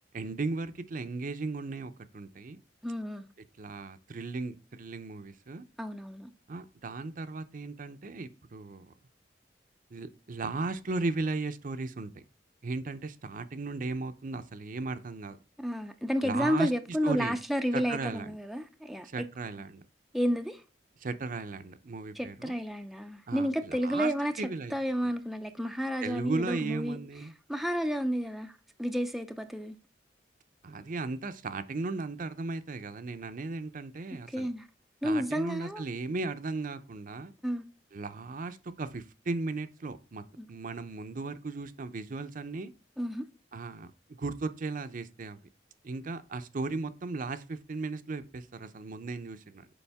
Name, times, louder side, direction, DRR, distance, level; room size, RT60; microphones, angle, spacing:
voice 1, 0.1-2.6 3.6-5.7 6.5-8.9 9.9-12.2 12.6-15.4 16.2-17.4 17.7-18.4 19.0-19.8 21.0-22.6 23.3-24.1 24.4-24.7 26.0-27.3 30.6-34.5 35.0-37.3 37.9-42.7 43.5-45.4 45.8-49.7, right 3 dB, 50° right, 0.6 m, -36 dB
voice 2, 2.8-3.3 5.8-6.3 15.6-19.3 20.1-20.6 22.2-27.0 27.5-29.8 34.3-34.7 35.0-35.9 37.4-37.7 40.4-40.5 43.0-43.2, equal, ahead, 0.4 m, -31 dB
7.0 x 4.9 x 3.5 m
head